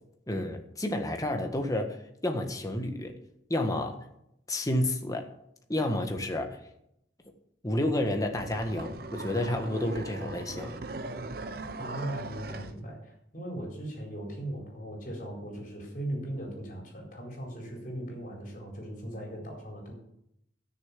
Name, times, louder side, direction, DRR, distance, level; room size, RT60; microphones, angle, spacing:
voice 1, 0.3-3.1 3.5-4.0 4.5-5.2 5.7-6.6 7.6-10.8, left 1 dB, 20° left, 4 dB, 1.4 m, -30 dB
sound 1, 8.1-12.8, right 2 dB, 55° right, 0.8 m, -39 dB
voice 2, 11.8-19.9, right 1 dB, 45° left, 0 dB, 4.5 m, -38 dB
13.0 x 6.9 x 7.4 m, 0.78 s
head